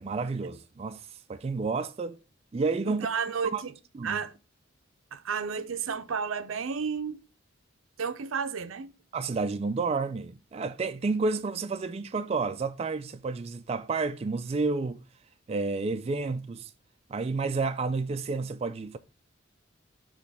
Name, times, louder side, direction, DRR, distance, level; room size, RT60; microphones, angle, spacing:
voice 1, 0.0-2.2 2.5-3.1 3.5-3.6 4.0-4.2 9.1-15.0 15.5-16.7 17.1-19.0, right 4 dB, 30° right, 0.3 m, -30 dB
voice 2, 2.9-3.7 4.0-4.3 5.1-7.2 8.0-8.9, right 6 dB, 85° right, 0.6 m, -32 dB
6.3 x 3.1 x 5.3 m
head